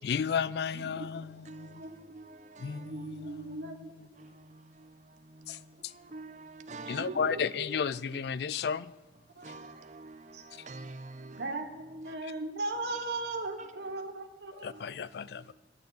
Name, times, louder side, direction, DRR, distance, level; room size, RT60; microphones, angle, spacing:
voice 1, 0.0-1.8 2.6-3.7 5.5-5.9 6.9-8.9 10.5-10.6 12.2-12.3 14.6-15.4, left 6 dB, 60° left, 0.3 m, -33 dB
voice 2, 0.7-1.0 1.6-1.9 2.6-3.9 6.9-7.7 9.3-9.8 10.3-10.4 11.4-14.9, right 2 dB, 65° right, 1.1 m, -38 dB
voice 3, 1.5-3.6 4.2-7.3 9.4-11.5 12.1-12.2 13.6-13.7 14.7-14.9 15.3-15.4, right 3 dB, 40° right, 0.7 m, -48 dB
11.0 x 6.8 x 8.0 m
head